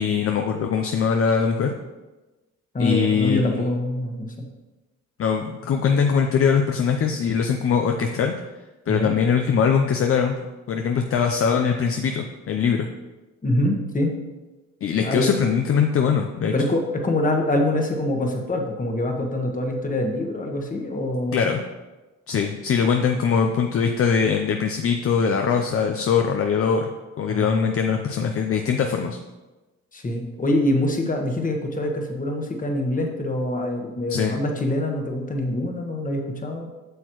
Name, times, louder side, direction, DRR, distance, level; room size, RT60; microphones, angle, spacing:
voice 1, 0.0-1.7 2.8-3.7 5.2-8.3 8.9-10.4 10.7-12.9 14.8-16.5 21.3-21.6 22.3-26.9 27.2-29.2 34.1-34.4, left 6 dB, 50° left, 4 dB, 0.6 m, -22 dB
voice 2, 2.7-4.5 8.9-9.2 13.4-14.1 15.0-15.3 16.5-21.4 27.3-28.0 29.9-36.7, left 1 dB, 25° left, 2 dB, 1.3 m, -25 dB
8.0 x 6.3 x 3.1 m, 1.1 s
cardioid pair, 90°, 30 cm